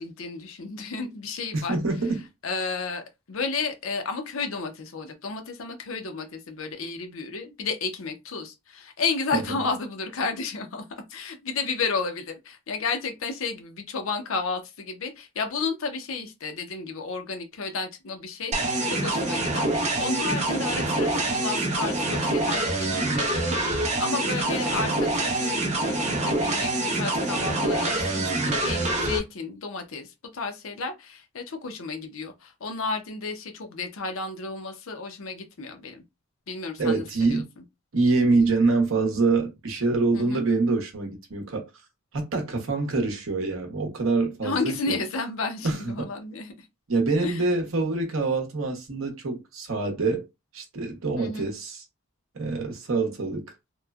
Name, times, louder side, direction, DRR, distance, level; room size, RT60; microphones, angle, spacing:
voice 1, 0.0-1.8 2.4-10.8 11.1-36.0 36.5-37.4 40.1-40.4 44.4-46.5 47.2-47.4 51.2-51.5, left 4 dB, 70° left, 0.6 m, -32 dB
voice 2, 1.5-2.3 9.3-9.6 36.8-37.5 37.9-41.7 42.1-44.9 45.6-46.1 46.9-50.2 50.5-51.8 52.3-53.5, right 3 dB, 70° right, 0.8 m, -25 dB
sound 1, 18.5-29.2, right 2 dB, 30° right, 0.6 m, -26 dB
3.0 x 2.1 x 2.3 m
head